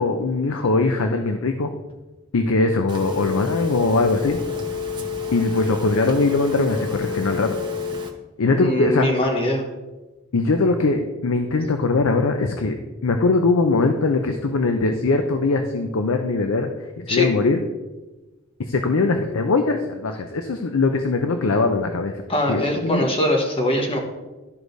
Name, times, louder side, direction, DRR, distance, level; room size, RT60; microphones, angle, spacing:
voice 1, 0.0-1.7 2.3-4.4 5.3-7.5 8.4-9.1 10.3-12.8 13.0-16.7 17.0-17.6 18.6-22.1 22.5-23.1, left 3 dB, 80° left, 5 dB, 0.6 m, -21 dB
Telephone, 2.9-8.1, left 6 dB, 20° right, 0.8 m, -29 dB
voice 2, 8.5-9.6 17.1-17.3 22.3-24.0, left 1 dB, 25° left, 2 dB, 1.0 m, -22 dB
13.0 x 4.8 x 2.6 m, 1.1 s
head